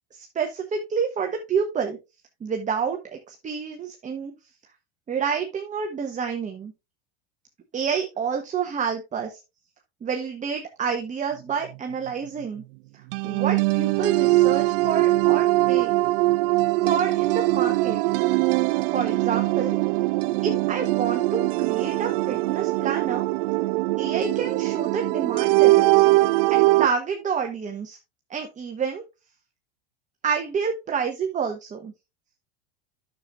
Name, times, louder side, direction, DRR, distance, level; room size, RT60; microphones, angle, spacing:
voice 1, 0.1-2.0 2.4-4.3 5.1-6.7 7.7-9.4 10.0-12.6 12.9-15.9 16.8-18.0 18.9-19.8 20.4-23.3 24.0-26.1 26.5-28.0 28.3-29.0 30.2-31.9, right 6 dB, 25° right, 4 dB, 1.2 m, -28 dB
sound 1, 13.1-26.9, right 20 dB, 60° right, 0.4 m, -21 dB
10.5 x 6.9 x 2.4 m, 0.25 s
hypercardioid pair, 95°, 31 cm